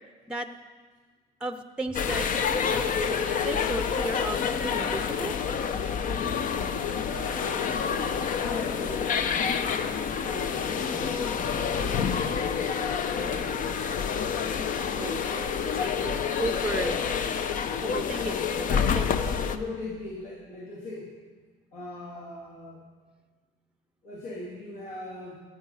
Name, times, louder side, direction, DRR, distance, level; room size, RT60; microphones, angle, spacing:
voice 1, 1.4-2.3 2.6-5.4 7.7-7.8 14.9-15.5 15.7-17.0 17.8-19.4, right 2 dB, 5° right, 8 dB, 0.6 m, -35 dB
sound 1, 1.9-19.6, left 6 dB, 55° left, 0.7 m, -28 dB
voice 2, 6.7-13.8 19.5-21.1 21.7-22.8 24.0-25.3, left 2 dB, 75° left, -5 dB, 2.8 m, -40 dB
17.0 x 7.4 x 5.5 m, 1.5 s
cardioid pair, 90°, 16 cm